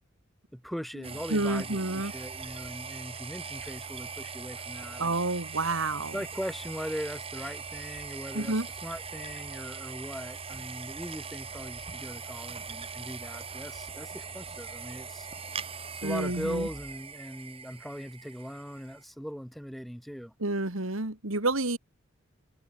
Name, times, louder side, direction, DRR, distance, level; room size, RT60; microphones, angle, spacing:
voice 1, 0.5-5.2 6.1-8.6 8.8-15.3 15.9-20.3, equal, ahead, 1.3 m, -39 dB
sound 1, 1.0-19.0, right 5 dB, 30° right, 5.7 m, -41 dB
voice 2, 1.3-2.1 5.0-6.2 8.3-8.7 16.0-16.7 20.4-21.8, right 2 dB, 85° right, 2.9 m, -29 dB
head